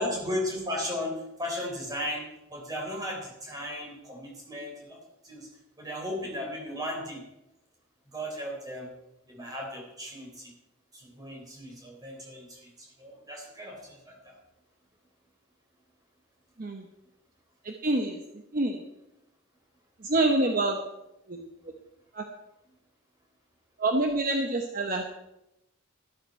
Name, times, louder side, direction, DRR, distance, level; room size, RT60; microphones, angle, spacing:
voice 1, 0.0-5.0 5.2-5.5 5.8-7.2 8.1-8.9 9.3-10.5 10.9-14.3, left 1 dB, 15° right, -1 dB, 4.1 m, -36 dB
voice 2, 17.6-18.2 18.5-18.8 20.0-20.8 21.3-21.5 22.1-22.2 23.8-25.1, right 2 dB, 40° right, 3 dB, 1.0 m, -26 dB
14.0 x 12.5 x 4.5 m, 0.91 s
head